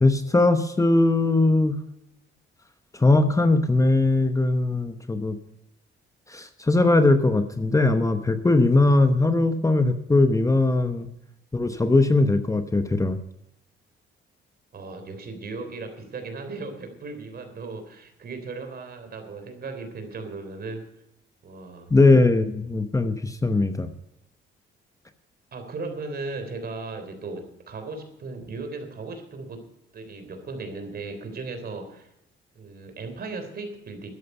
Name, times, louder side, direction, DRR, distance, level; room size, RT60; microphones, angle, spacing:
voice 1, 0.0-1.8 2.9-5.4 6.3-11.1 11.5-13.2 21.9-23.9, left 2 dB, 15° left, 9 dB, 0.9 m, -20 dB
voice 2, 14.7-20.9 21.4-21.9 25.5-29.7 29.9-32.1 32.5-34.1, right 3 dB, 50° right, 7 dB, 3.3 m, -36 dB
13.0 x 11.0 x 5.5 m, 0.83 s
cardioid pair, 90°, 20 cm